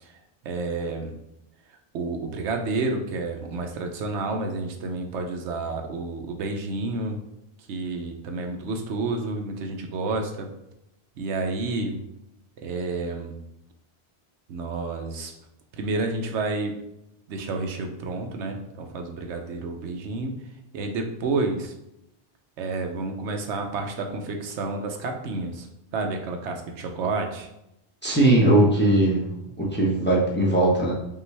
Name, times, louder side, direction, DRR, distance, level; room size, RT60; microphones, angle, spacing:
voice 1, 0.4-1.2 1.9-7.2 7.7-10.5 11.2-12.0 12.6-13.4 14.5-15.3 15.8-16.8 17.3-20.4 20.7-21.7 22.6-25.7 25.9-27.5, right 3 dB, 80° right, 4 dB, 0.9 m, -30 dB
voice 2, 28.0-29.3 29.6-30.9, right 1 dB, 10° left, -3 dB, 0.8 m, -19 dB
5.4 x 2.4 x 3.2 m, 0.83 s
omnidirectional pair, 1.2 m